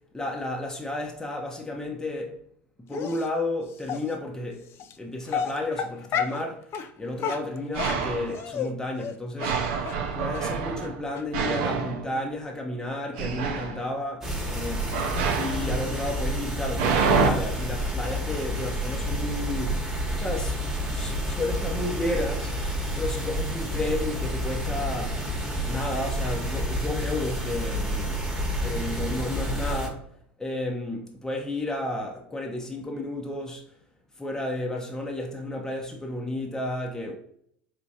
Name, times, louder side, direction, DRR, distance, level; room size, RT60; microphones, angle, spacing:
voice 1, 0.1-2.4 2.8-6.7 7.0-9.6 10.1-15.0 15.4-19.8 20.2-22.7 23.0-25.2 25.7-28.2 28.6-30.1 30.4-33.7 34.2-37.1, left 1 dB, 10° left, 0.8 m, -32 dB
Dog, 2.9-3.3 3.9-4.0 4.8-4.9 5.3-6.4 6.7-6.9 7.2-8.7 9.0-9.1 9.4-9.5 9.9-10.0 10.3-10.4 10.8-10.9 11.1-11.2, left 7 dB, 45° left, 0.4 m, -30 dB
sound 1, 7.3-7.4 7.7-8.4 9.4-12.7 13.1-13.9 14.9-17.3, right 5 dB, 65° right, 0.6 m, -28 dB
sound 2, 14.2-29.9, equal, 10° right, 1.2 m, -29 dB
4.7 x 3.0 x 2.7 m
hypercardioid pair, 80°, 6 cm